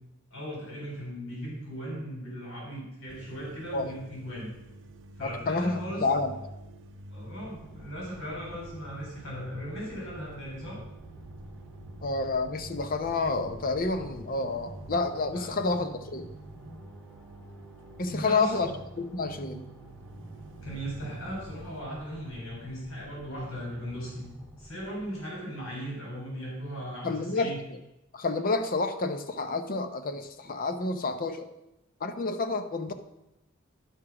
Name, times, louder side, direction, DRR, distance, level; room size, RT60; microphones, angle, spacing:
voice 1, 0.3-4.5 5.2-6.0 7.1-10.8 15.3-15.5 18.1-18.7 20.5-24.3 24.5-27.6, equal, 75° left, -4 dB, 3.8 m, -38 dB
sound 1, 3.1-21.8, right 1 dB, 60° right, 0.6 m, -48 dB
voice 2, 5.2-6.3 12.0-16.3 18.0-18.7 19.0-19.7 27.0-27.8 28.1-31.5 32.0-32.9, left 3 dB, 45° left, 8 dB, 0.7 m, -29 dB
sound 2, 7.4-25.4, right 1 dB, 5° left, 1.1 m, -49 dB
11.0 x 4.9 x 6.0 m, 0.91 s
head